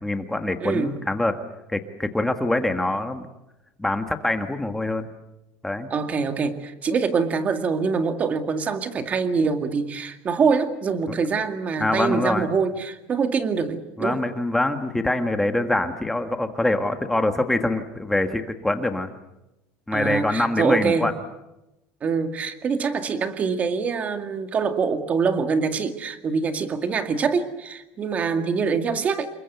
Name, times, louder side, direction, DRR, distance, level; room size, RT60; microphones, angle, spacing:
voice 1, 0.0-1.4 1.7-3.2 3.8-5.1 5.6-5.9 11.8-12.5 14.0-19.1 19.9-21.1, left 2 dB, 5° left, 7 dB, 1.6 m, -24 dB
voice 2, 0.6-1.0 5.9-14.2 19.9-21.1 22.0-29.3, right 5 dB, 25° right, 8 dB, 2.1 m, -24 dB
28.0 x 23.0 x 8.1 m, 0.93 s
cardioid pair, 170°, 6 cm